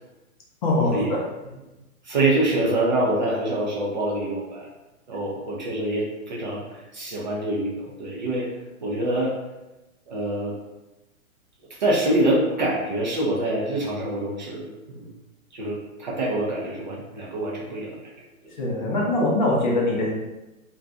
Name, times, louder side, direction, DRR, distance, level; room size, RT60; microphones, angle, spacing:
voice 1, 0.6-1.2 18.6-20.1, left 2 dB, 35° left, -3 dB, 0.5 m, -22 dB
voice 2, 2.0-4.7 5.1-8.5 8.8-9.4 10.1-10.5 11.8-15.1 15.5-18.1 18.4-18.5, right 1 dB, 35° right, -4 dB, 0.4 m, -25 dB
2.5 x 2.2 x 2.4 m, 1.0 s
figure-of-eight pair, 120°, 43 cm